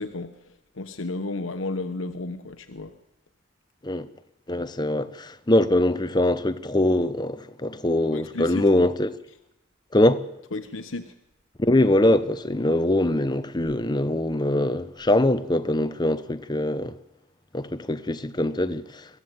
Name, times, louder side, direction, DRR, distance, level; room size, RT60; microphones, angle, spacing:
voice 1, 0.0-3.0 8.1-8.9 10.5-11.1, left 2 dB, 80° left, 1.1 m, -33 dB
voice 2, 4.5-9.2 9.9-10.2 11.6-16.9 17.5-19.0, left 1 dB, 20° left, 0.9 m, -23 dB
23.0 x 15.0 x 9.2 m
head